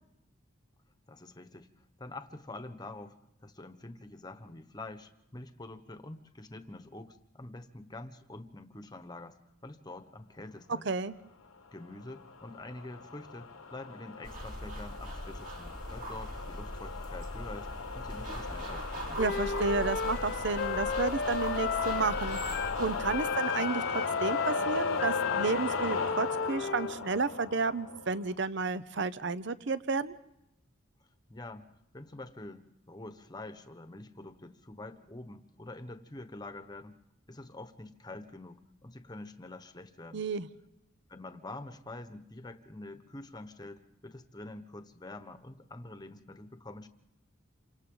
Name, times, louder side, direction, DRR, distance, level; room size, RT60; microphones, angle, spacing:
voice 1, 1.1-1.7 2.0-3.1 3.4-9.4 9.6-10.9 11.7-19.2 31.3-31.7 31.9-37.0 37.3-40.2 41.1-46.9, left 2 dB, 20° left, 9 dB, 1.1 m, -46 dB
voice 2, 10.7-11.1 19.2-30.1 40.1-40.5, right 4 dB, 55° right, 15 dB, 0.7 m, -32 dB
sound 1, 11.8-28.3, left 4 dB, 90° left, 1.3 m, -37 dB
sound 2, 14.2-23.2, equal, 40° right, 3.0 m, -41 dB
Wind instrument woodwind instrument, 19.1-22.8 23.1-27.0, left 5 dB, 50° left, 0.9 m, -34 dB
28.5 x 25.5 x 3.9 m, 0.86 s
head